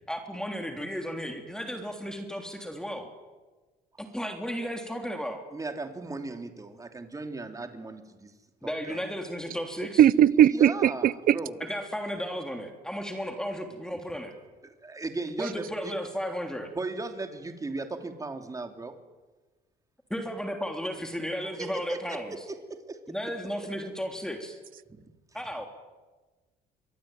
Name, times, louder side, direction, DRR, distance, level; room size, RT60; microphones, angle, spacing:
voice 1, 0.1-3.1 4.0-5.5 8.6-10.0 11.6-14.3 15.3-16.7 20.1-22.4 23.1-24.6 25.3-25.7, equal, 5° left, 3.4 m, -34 dB
voice 2, 5.5-8.3 8.8-9.0 10.5-11.6 14.6-15.9 16.7-18.9 21.6-23.0 24.9-25.0, right 3 dB, 20° right, 3.3 m, -37 dB
voice 3, 10.0-11.4, right 10 dB, 60° right, 0.9 m, -19 dB
26.0 x 23.5 x 9.2 m
cardioid pair, 110°, 17 cm